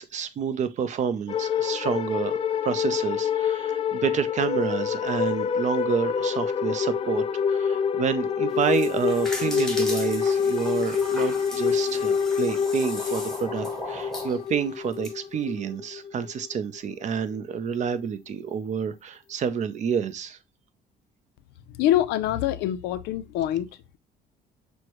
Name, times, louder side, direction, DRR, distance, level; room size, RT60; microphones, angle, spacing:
voice 1, 0.0-20.4, right 7 dB, 45° right, 0.5 m, -29 dB
sound 1, 1.3-16.9, left 7 dB, 35° left, 0.4 m, -27 dB
sound 2, 8.5-15.1, equal, ahead, 1.2 m, -37 dB
voice 2, 21.7-23.7, left 12 dB, 90° left, 0.4 m, -24 dB
6.2 x 2.1 x 2.9 m
cardioid pair, 110°, 17 cm